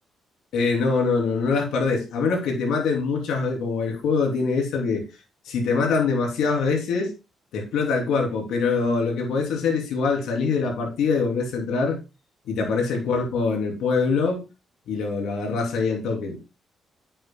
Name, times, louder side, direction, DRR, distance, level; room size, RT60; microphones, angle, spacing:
voice 1, 0.5-5.0 5.4-7.1 7.5-12.0 12.4-14.4 14.9-16.4, left 4 dB, 80° left, 3.0 m, -24 dB
9.3 x 7.9 x 2.2 m
cardioid pair, 90°, 0 cm